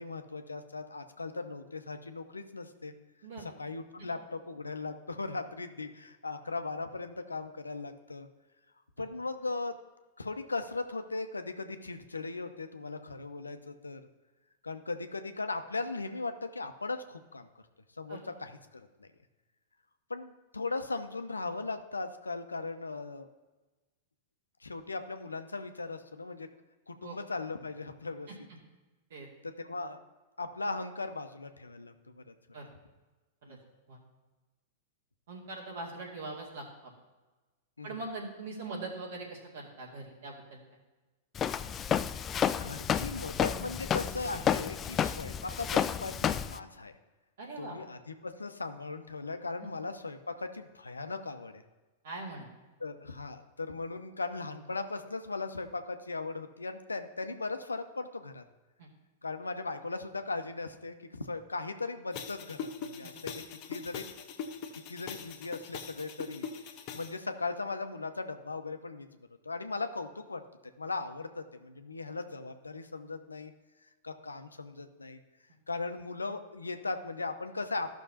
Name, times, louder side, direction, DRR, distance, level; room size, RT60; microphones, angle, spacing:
voice 1, 0.0-2.9 3.4-8.3 9.0-9.7 10.2-14.0 14.6-17.5 18.0-19.1 20.1-23.3 24.6-26.5 26.9-28.3 29.4-30.0 30.4-32.6 33.5-33.6 37.8-38.0 42.6-46.9 47.6-51.6 52.8-58.4 59.2-63.4 63.7-64.1 64.7-66.5 66.9-69.1 69.4-70.4 70.8-73.5 74.0-75.2 75.7-77.9, left 3 dB, 90° left, 8 dB, 0.6 m, -38 dB
voice 2, 35.3-36.9 37.8-40.6 47.4-47.8 49.6-49.7 52.0-52.5 58.8-58.9 63.0-63.1, right 3 dB, 65° right, -3 dB, 2.4 m, -42 dB
Walk footsteps, 41.4-46.6, left 8 dB, 25° left, 0.3 m, -31 dB
sound 1, 62.1-67.1, left 6 dB, 45° left, 1.1 m, -42 dB
14.0 x 6.1 x 2.8 m, 1.2 s
hypercardioid pair, 100°, 0 cm